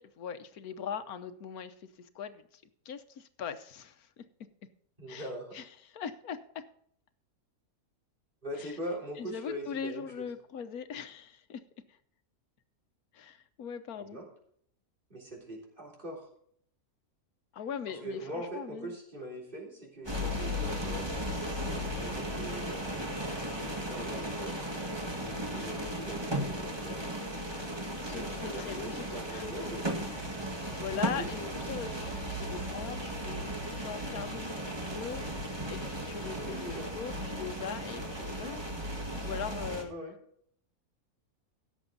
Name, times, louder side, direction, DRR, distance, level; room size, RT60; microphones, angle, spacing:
voice 1, 0.0-1.7 2.1-4.2 5.1-5.3 5.5-5.7 5.9-6.7 8.6-8.7 9.2-11.6 13.1-14.2 17.5-18.9 28.0-29.5 30.7-33.5 33.8-35.2 35.7-38.6 39.2-39.9, left 7 dB, 85° left, 10 dB, 1.4 m, -40 dB
voice 2, 5.0-5.6 8.4-10.3 14.0-14.3 15.1-16.3 17.9-21.1 21.9-23.0 23.4-24.6 25.5-27.0 28.1-29.9 30.9-31.3 36.1-36.9 39.9-40.1, right 1 dB, 35° right, -2 dB, 3.8 m, -42 dB
sound 1, 20.0-39.8, equal, 20° right, 1.9 m, -36 dB
Bowed string instrument, 25.1-28.4, left 4 dB, 55° right, 3.2 m, -52 dB
17.0 x 7.1 x 3.9 m, 0.64 s
omnidirectional pair, 1.5 m